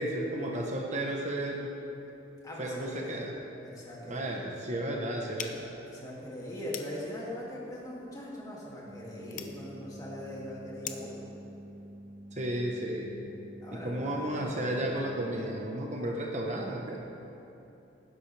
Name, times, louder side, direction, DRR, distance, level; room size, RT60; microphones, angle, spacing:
voice 1, 0.0-1.8 2.6-3.3 4.1-5.7 12.3-13.1 13.7-17.0, right 1 dB, 40° right, 0 dB, 1.1 m, -33 dB
voice 2, 2.4-3.3 3.6-4.5 5.8-11.2 13.6-14.3, left 1 dB, 20° left, -6 dB, 2.5 m, -41 dB
sound 1, 5.3-11.2, left 8 dB, 45° left, 0.7 m, -46 dB
sound 2, 8.8-15.4, equal, 15° right, 1.2 m, -48 dB
18.5 x 10.0 x 3.4 m, 2.9 s
head